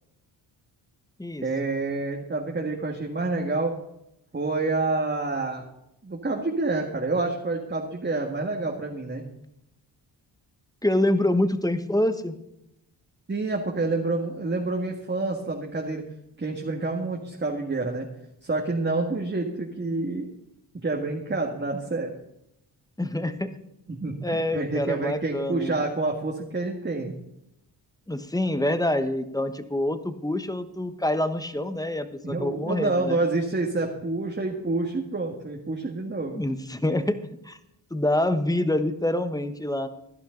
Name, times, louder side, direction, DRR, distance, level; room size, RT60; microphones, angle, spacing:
voice 1, 1.4-3.7 4.3-5.6 6.0-9.3 13.3-16.0 16.4-18.1 18.4-20.3 20.8-22.1 23.9-27.1 32.2-36.4, right 3 dB, 25° right, 0 dB, 2.0 m, -28 dB
voice 2, 10.8-12.3 23.0-23.6 24.2-25.8 28.1-33.2 36.3-37.2 37.4-37.6 37.9-39.9, left 1 dB, 10° left, 10 dB, 1.2 m, -26 dB
16.5 x 11.5 x 3.9 m, 0.82 s
cardioid pair, 60°, 46 cm